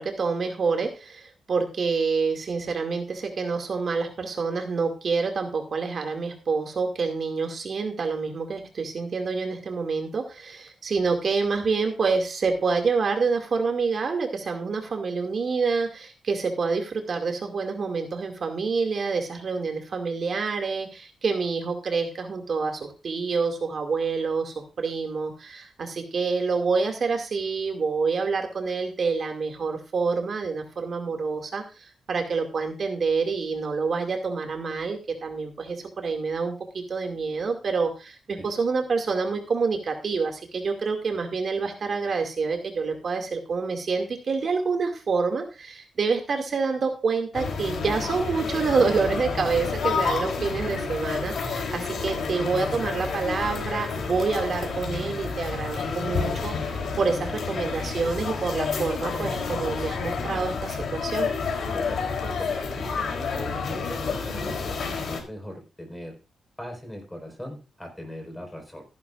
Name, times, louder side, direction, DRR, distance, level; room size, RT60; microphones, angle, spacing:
voice 1, 0.0-56.5 57.0-61.3, right 4 dB, 50° right, 4 dB, 2.3 m, -27 dB
sound 1, 47.3-65.2, left 5 dB, 70° left, 3.5 m, -29 dB
voice 2, 61.7-66.2 66.6-68.8, equal, 10° left, 3 dB, 4.8 m, -40 dB
15.0 x 11.0 x 2.5 m, 0.31 s
cardioid pair, 105°, 0 cm